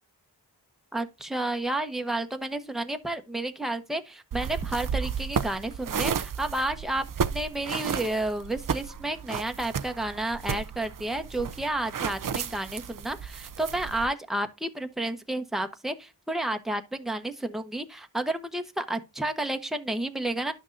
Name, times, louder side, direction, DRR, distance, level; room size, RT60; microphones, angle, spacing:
voice 1, 0.9-7.0 7.3-20.5, right 1 dB, ahead, 1.0 m, -31 dB
sound 1, 4.3-14.1, right 7 dB, 55° right, 0.6 m, -33 dB
11.0 x 6.1 x 2.6 m
wide cardioid pair, 70°, 41 cm